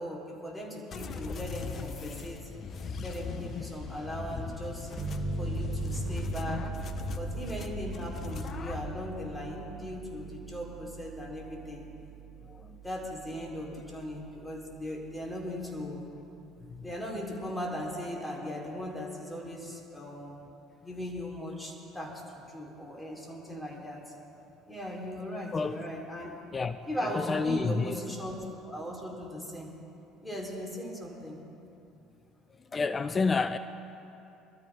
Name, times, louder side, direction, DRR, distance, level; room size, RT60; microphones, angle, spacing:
voice 1, 0.0-2.5 3.0-4.9 5.4-6.7 7.1-11.9 12.8-16.1 16.8-20.4 20.8-24.0 24.7-26.4 26.8-29.7 30.2-31.4, equal, 10° left, 3.8 m, -38 dB
sound 1, 0.9-8.9, left 5 dB, 45° left, 0.9 m, -39 dB
sound 2, 5.0-14.3, right 3 dB, 20° right, 2.5 m, -39 dB
voice 2, 12.5-12.8 16.7-16.9 25.5-25.8 26.5-28.0 32.7-33.6, left 4 dB, 30° left, 0.4 m, -30 dB
23.0 x 13.0 x 3.6 m
hypercardioid pair, 65°, 0 cm